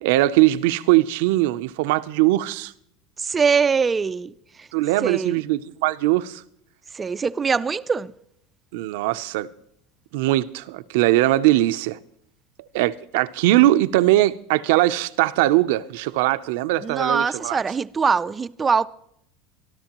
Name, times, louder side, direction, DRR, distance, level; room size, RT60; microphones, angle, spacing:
voice 1, 0.0-2.7 4.7-6.4 8.7-9.5 10.1-12.0 12.7-17.6, right 16 dB, 75° right, 0.6 m, -20 dB
voice 2, 3.2-4.3 4.6-4.7 5.0-5.4 6.9-8.1 16.8-18.9, right 5 dB, 20° right, 0.4 m, -22 dB
23.5 x 12.5 x 3.0 m
supercardioid pair, 135°, 0 cm